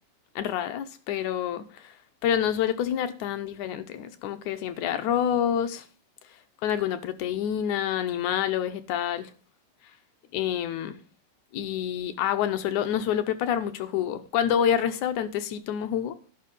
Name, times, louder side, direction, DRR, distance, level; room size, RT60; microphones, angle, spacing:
voice 1, 0.4-1.7 2.2-5.8 6.6-9.3 10.3-11.0 11.5-16.2, left 9 dB, 75° left, 2.0 m, -27 dB
11.0 x 5.7 x 5.5 m
omnidirectional pair, 3.8 m